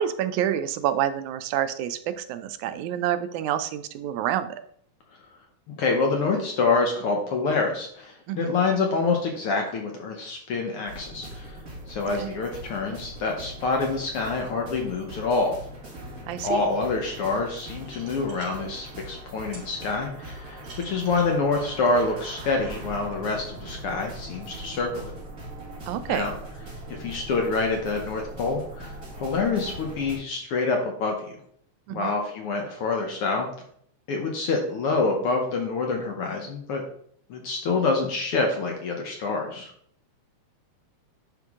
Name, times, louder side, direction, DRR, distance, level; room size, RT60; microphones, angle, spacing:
voice 1, 0.0-4.6 8.3-8.5 12.2-12.3 16.3-16.6 25.9-26.3 31.9-32.1, right 10 dB, 85° right, 11 dB, 2.0 m, -28 dB
voice 2, 5.8-11.6 11.9-15.5 16.4-20.6 20.8-25.1 26.1-26.3 26.9-31.1 31.9-33.5 34.1-36.8 37.3-39.7, left 3 dB, 65° left, 2 dB, 1.5 m, -26 dB
sound 1, 10.9-30.2, right 1 dB, 30° right, 1.9 m, -40 dB
sound 2, 17.0-18.9 19.5-19.6 20.2-22.6, right 2 dB, 70° right, 4.1 m, -48 dB
10.5 x 3.7 x 3.6 m, 0.63 s
omnidirectional pair, 3.4 m